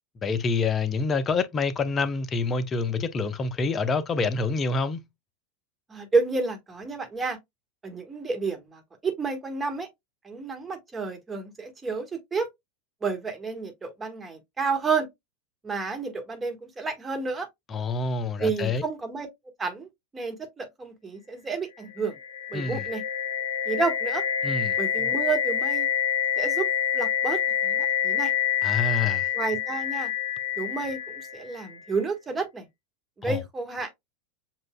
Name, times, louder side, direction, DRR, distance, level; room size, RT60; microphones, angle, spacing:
voice 1, 0.2-5.0 17.7-18.8 22.5-22.9 24.4-24.8 28.6-29.3 33.2-33.4, left 4 dB, 30° left, 0.7 m, -27 dB
voice 2, 5.9-7.4 7.8-9.9 10.2-12.5 13.0-15.1 15.6-17.5 18.4-19.3 19.6-19.9 20.1-22.1 22.5-23.0 23.6-24.2 24.8-25.9 26.4-26.6 26.9-28.3 29.3-30.1 30.6-32.6 33.2-33.9, right 4 dB, 20° right, 1.5 m, -30 dB
sound 1, 22.0-31.8, left 9 dB, 75° left, 0.5 m, -27 dB
7.3 x 2.5 x 2.2 m
hypercardioid pair, 90°, 0 cm